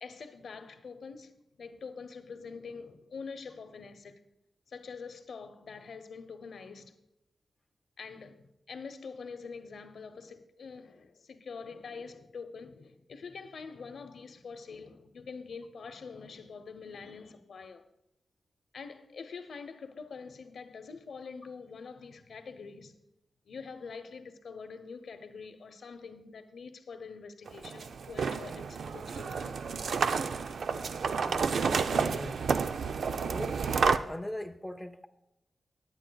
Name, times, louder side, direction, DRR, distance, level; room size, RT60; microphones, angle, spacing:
voice 1, 0.0-4.2 4.7-6.9 8.0-17.8 18.7-23.0 23.5-29.5, left 5 dB, 70° left, 0.8 m, -45 dB
sound 1, 27.5-34.0, right 5 dB, 75° right, 0.4 m, -30 dB
voice 2, 31.2-32.5 33.3-33.6 34.0-35.1, left 1 dB, 5° left, 0.5 m, -40 dB
19.5 x 8.8 x 2.3 m
wide cardioid pair, 145°, 0 cm